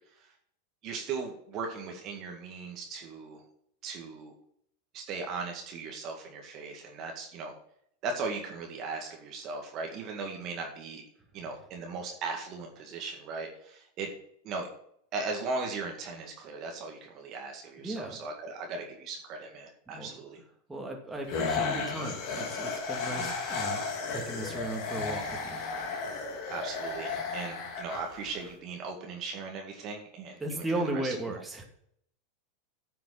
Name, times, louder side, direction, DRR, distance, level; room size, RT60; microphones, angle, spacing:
voice 1, 0.8-3.4 3.8-4.3 4.9-7.5 8.0-11.0 11.3-14.1 14.4-14.7 15.1-20.4 23.2-23.3 26.5-31.4, right 4 dB, 45° right, 2 dB, 2.0 m, -38 dB
voice 2, 17.8-18.2 19.9-20.2 20.7-23.8 24.1-25.6 30.4-31.6, right 2 dB, 10° right, 0 dB, 2.5 m, -36 dB
sound 1, 21.3-28.5, left 4 dB, 50° left, 2.4 m, -34 dB
10.0 x 5.9 x 5.9 m, 0.68 s
hypercardioid pair, 90°, 0 cm